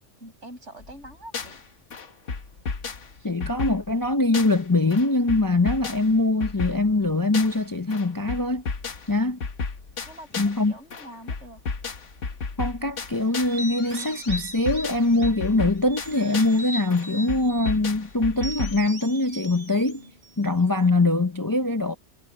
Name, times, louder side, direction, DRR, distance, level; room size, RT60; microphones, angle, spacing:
voice 1, 0.2-1.6 3.1-3.3 10.1-11.6, right 1 dB, 80° right, 7.4 m, -45 dB
sound 1, 0.8-1.6 1.9-4.7 4.9-7.7 7.9-10.6 10.9-13.6 13.9-16.6 16.9-18.9, left 4 dB, 90° left, 1.7 m, -33 dB
voice 2, 3.2-8.6 9.1-9.4 10.4-10.7 12.6-20.0 20.4-21.9, left 2 dB, 25° left, 0.5 m, -23 dB
sound 2, 13.4-15.5 15.9-17.8 18.4-20.9, equal, 40° right, 4.9 m, -39 dB
omnidirectional pair, 1.2 m